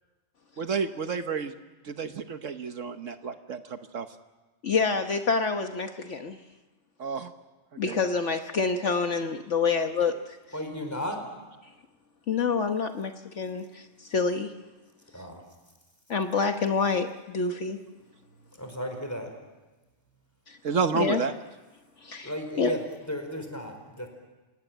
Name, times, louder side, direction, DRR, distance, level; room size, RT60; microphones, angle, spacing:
voice 1, 0.6-1.5 1.8-4.1 7.0-7.3 7.7-8.0 20.6-21.3, right 5 dB, 65° right, 8 dB, 1.4 m, -30 dB
voice 2, 4.6-6.4 7.8-10.4 12.3-14.5 16.1-17.8 20.5-20.6 20.9-21.2 22.0-22.3 22.6-22.7, left 5 dB, 60° left, 6 dB, 1.4 m, -27 dB
voice 3, 10.5-11.3 15.1-15.5 18.6-19.3 22.2-24.1, equal, 10° left, 5 dB, 4.6 m, -34 dB
28.0 x 18.0 x 9.1 m, 1.2 s
omnidirectional pair, 1.4 m